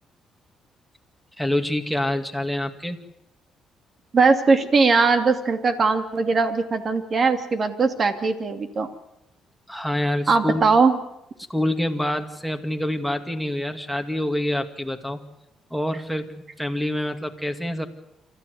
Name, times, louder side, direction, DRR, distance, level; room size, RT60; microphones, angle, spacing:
voice 1, 1.4-3.0 9.7-10.6 11.5-15.2 15.7-16.3 16.6-17.9, left 1 dB, ahead, 8 dB, 2.3 m, -26 dB
voice 2, 4.1-8.9 10.3-11.0, right 4 dB, 45° right, 9 dB, 2.6 m, -20 dB
27.0 x 14.0 x 9.6 m, 0.87 s
cardioid pair, 90°, 0 cm